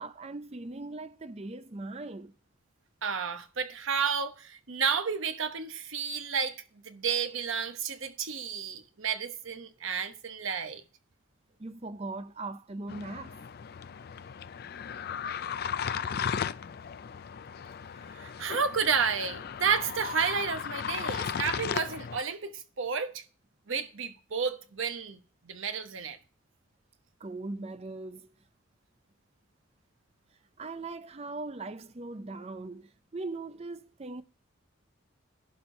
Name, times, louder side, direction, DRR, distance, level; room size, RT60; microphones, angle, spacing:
voice 1, 0.0-2.3 11.6-13.4 27.2-28.3 30.6-34.2, right 2 dB, 30° right, 0.5 m, -40 dB
voice 2, 3.0-6.6 6.8-10.8 18.1-23.2 23.7-26.2, right 6 dB, 65° right, 1.0 m, -31 dB
sound 1, 12.9-22.2, left 7 dB, 45° left, 0.3 m, -36 dB
11.5 x 4.6 x 5.3 m
head